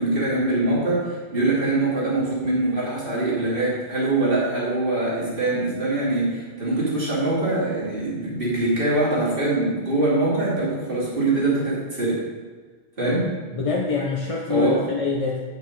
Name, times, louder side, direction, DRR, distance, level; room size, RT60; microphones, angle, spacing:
voice 1, 0.0-12.2 13.0-13.3 14.5-14.8, right 2 dB, 55° right, -7 dB, 3.2 m, -23 dB
voice 2, 13.5-15.4, left 5 dB, 35° left, -2 dB, 0.8 m, -25 dB
8.2 x 6.8 x 4.7 m, 1.4 s
omnidirectional pair, 1.1 m